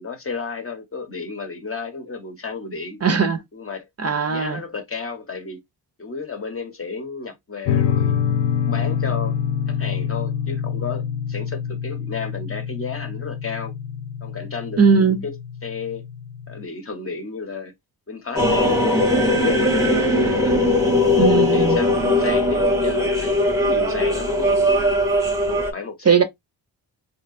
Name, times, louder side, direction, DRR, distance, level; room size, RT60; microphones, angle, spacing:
voice 1, 0.0-3.0 3.5-3.9 4.3-5.6 6.0-8.2 8.6-9.4 9.7-13.7 14.2-15.3 15.6-16.0 16.5-17.7 18.1-20.0 20.3-20.7 21.1-24.9 25.5-26.2, left 4 dB, 35° left, 0.8 m, -32 dB
voice 2, 3.0-3.4 4.0-4.6 14.8-15.2 21.2-21.8 26.1-26.2, right 6 dB, 40° right, 0.5 m, -18 dB
sound 1, 7.6-16.6, left 8 dB, 85° left, 0.5 m, -26 dB
sound 2, 18.4-25.7, left 1 dB, 5° right, 0.8 m, -19 dB
3.3 x 2.8 x 2.4 m
wide cardioid pair, 95°, 41 cm